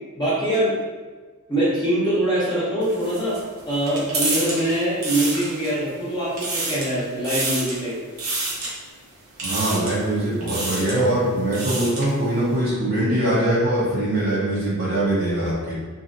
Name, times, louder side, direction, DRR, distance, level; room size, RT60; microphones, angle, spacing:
voice 1, 0.2-0.7 1.5-3.4 3.7-8.0, right 1 dB, 20° left, -9 dB, 0.7 m, -23 dB
sound 1, 2.8-5.9 6.2-6.9 7.2-7.8 8.2-8.7 9.4-10.0 10.4-11.0 11.4-12.1, right 2 dB, 80° right, 0.8 m, -28 dB
voice 2, 9.4-15.7, right 1 dB, 45° right, -8 dB, 0.8 m, -22 dB
3.0 x 2.6 x 2.5 m, 1.4 s
head